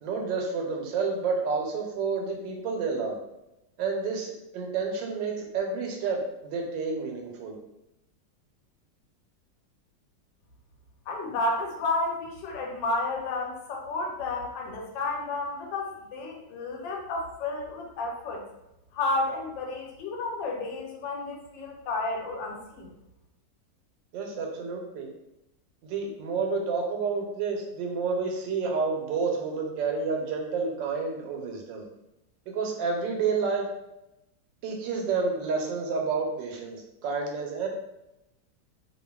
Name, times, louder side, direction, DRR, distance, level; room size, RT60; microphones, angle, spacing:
voice 1, 0.0-3.2 3.8-7.6 24.1-25.1 25.8-31.8 32.5-33.7 34.6-37.7, right 4 dB, 85° right, 1 dB, 1.3 m, -30 dB
voice 2, 11.1-18.4 18.9-22.9, left 2 dB, 90° left, 1 dB, 1.3 m, -31 dB
2.7 x 2.5 x 2.2 m, 0.91 s
omnidirectional pair, 1.9 m